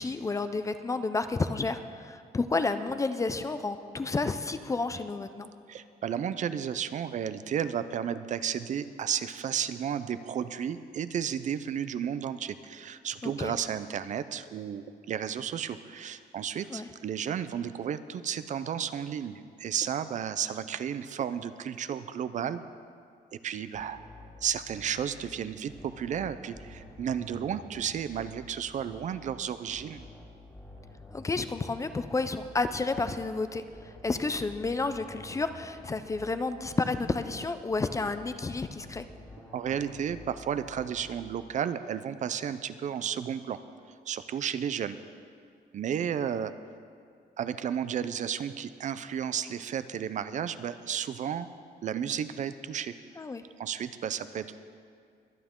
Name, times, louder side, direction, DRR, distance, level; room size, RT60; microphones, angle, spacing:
voice 1, 0.0-5.5 13.2-13.6 16.7-16.9 31.1-33.6 34.0-39.1 53.2-53.4, left 3 dB, 20° left, 10 dB, 0.4 m, -31 dB
voice 2, 5.7-22.6 23.4-24.0 24.4-30.1 39.5-43.6 44.1-45.0 45.7-46.5 47.4-51.5 51.8-52.9 53.6-54.6, right 8 dB, 50° right, 13 dB, 0.5 m, -33 dB
sound 1, 23.7-25.2 25.7-28.4 28.7-29.2 29.7-33.2 33.7-36.4 36.7-37.2 37.7-40.4 40.7-41.2, left 1 dB, 5° left, 2.9 m, -49 dB
23.0 x 9.3 x 3.7 m, 2.3 s
cardioid pair, 160°, 16 cm